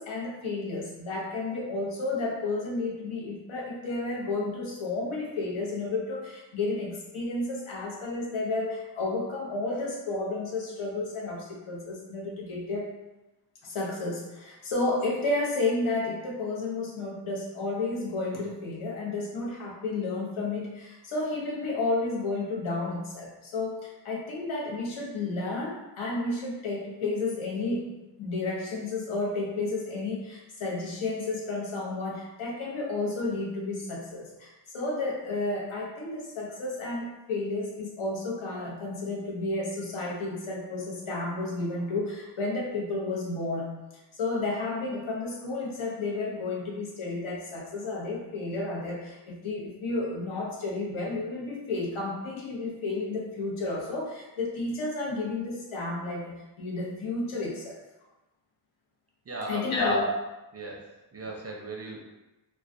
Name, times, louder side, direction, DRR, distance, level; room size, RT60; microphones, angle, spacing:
voice 1, 0.0-12.9 13.6-27.9 28.2-43.7 44.1-57.8 59.5-60.1, left 2 dB, 80° left, -4 dB, 0.8 m, -32 dB
voice 2, 59.3-60.0 60.5-62.0, right 2 dB, 35° right, -2 dB, 0.4 m, -38 dB
2.2 x 2.2 x 2.5 m, 1.0 s
wide cardioid pair, 90°, 47 cm